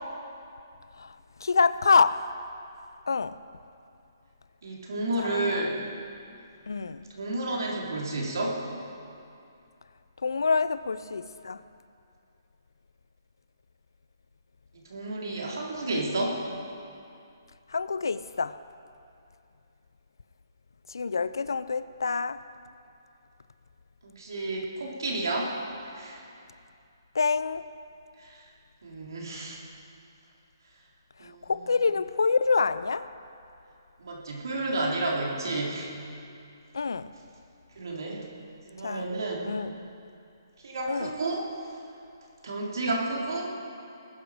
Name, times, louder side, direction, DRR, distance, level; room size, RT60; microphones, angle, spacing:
voice 1, 0.9-2.3 3.1-3.4 5.2-5.6 6.7-7.1 10.2-11.6 17.7-18.6 20.9-22.4 27.1-27.7 31.2-33.1 36.7-37.1 38.8-39.1 39.5-39.7 40.9-41.1, left 4 dB, 80° left, 15 dB, 0.6 m, -27 dB
voice 2, 4.6-5.8 7.1-8.6 14.7-16.4 24.0-25.6 25.9-26.3 28.2-28.5 28.8-29.6 31.2-31.5 34.0-35.9 37.7-38.3 38.7-39.5 40.6-41.5 42.4-43.5, right 2 dB, 70° right, -2 dB, 3.7 m, -31 dB
20.0 x 11.5 x 5.1 m, 2.5 s
hypercardioid pair, 145°, 2 cm